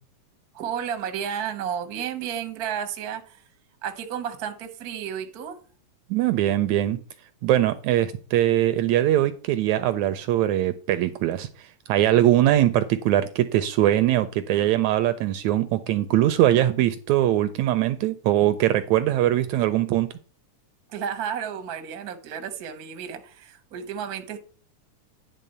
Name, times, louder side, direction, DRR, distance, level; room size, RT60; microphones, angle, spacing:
voice 1, 0.5-3.4 3.8-5.6 20.9-24.4, right 8 dB, 65° right, 0.9 m, -32 dB
voice 2, 6.1-7.0 7.4-20.1, right 13 dB, 80° right, 1.7 m, -22 dB
10.0 x 3.6 x 6.6 m
omnidirectional pair, 3.6 m